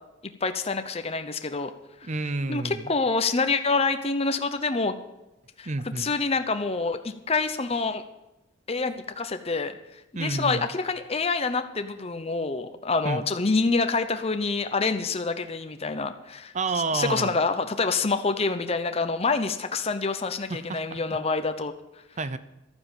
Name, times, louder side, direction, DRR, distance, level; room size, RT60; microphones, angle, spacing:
voice 1, 0.4-1.7 2.5-4.9 5.6-8.0 8.7-9.7 10.1-16.5 16.9-21.7, left 4 dB, 30° left, 8 dB, 0.8 m, -27 dB
voice 2, 2.1-2.9 5.7-6.1 10.1-10.6 13.0-13.3 16.5-17.4 20.5-21.2 22.2-22.4, right 3 dB, 35° right, 13 dB, 0.6 m, -30 dB
12.5 x 9.4 x 7.1 m, 0.95 s
head